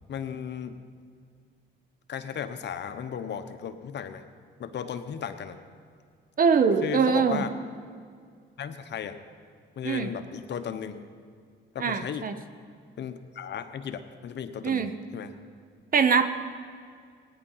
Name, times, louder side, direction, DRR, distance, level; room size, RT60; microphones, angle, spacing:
voice 1, 0.1-0.8 2.1-4.2 4.6-5.6 6.8-7.5 8.6-9.2 9.8-11.0 11.7-12.3 13.0-15.3, left 8 dB, 60° left, 9 dB, 1.0 m, -35 dB
voice 2, 6.4-7.4 9.8-10.1 11.8-12.3 14.6-14.9 15.9-16.3, right 6 dB, 45° right, 10 dB, 1.0 m, -23 dB
18.0 x 10.0 x 5.6 m, 2.1 s
cardioid pair, 90°, 20 cm